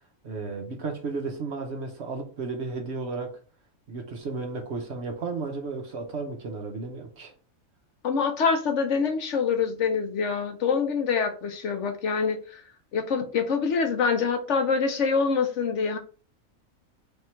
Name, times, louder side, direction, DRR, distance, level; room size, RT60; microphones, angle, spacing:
voice 1, 0.2-3.4 3.9-7.3, right 4 dB, 55° right, 1.0 m, -33 dB
voice 2, 8.0-12.6 12.9-16.0, left 5 dB, 65° left, 0.9 m, -25 dB
3.4 x 2.7 x 4.3 m
omnidirectional pair, 1.5 m